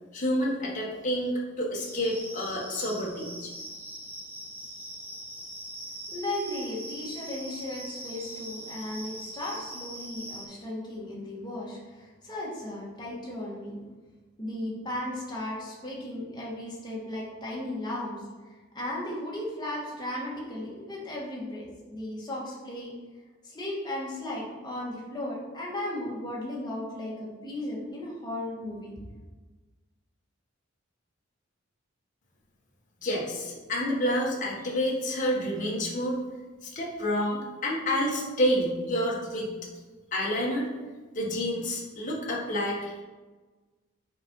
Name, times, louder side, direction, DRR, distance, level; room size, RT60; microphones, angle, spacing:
voice 1, 0.1-3.5 33.0-36.1 36.6-39.5 40.1-40.7 41.2-43.0, equal, 40° left, -4 dB, 1.6 m, -29 dB
sound 1, 1.7-10.4, right 1 dB, 10° right, 1.2 m, -42 dB
voice 2, 6.1-13.8 14.4-22.9 23.4-28.9, left 1 dB, 20° left, -5 dB, 2.1 m, -36 dB
7.2 x 5.3 x 4.8 m, 1.3 s
head